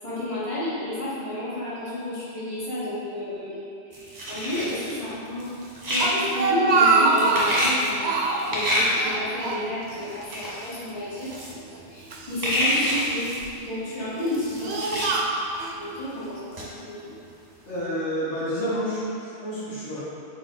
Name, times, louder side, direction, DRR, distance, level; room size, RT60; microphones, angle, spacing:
voice 1, 0.0-5.5 5.9-8.2 8.5-11.4 11.9-13.3 13.6-15.3 15.7-17.2, left 1 dB, 30° left, -10 dB, 1.5 m, -31 dB
sound 1, 3.9-5.0 5.4-6.5 7.1-7.9 8.4-8.9 9.9-10.0 10.2-10.9 11.2-11.5 11.8-11.9 12.1-13.5 14.2-15.1 15.5-15.6 16.0-16.1 16.5-16.7 17.2-17.3, left 1 dB, 35° right, 1.3 m, -27 dB
Speech, 5.8-7.7 8.0-8.6 9.0-10.1 10.3-10.5 11.3-12.3 13.0-13.4 14.1-15.8, right 3 dB, 70° right, 0.9 m, -24 dB
voice 2, 17.7-20.0, equal, 75° left, -9 dB, 1.7 m, -29 dB
4.7 x 4.5 x 4.5 m, 2.6 s
omnidirectional pair, 1.2 m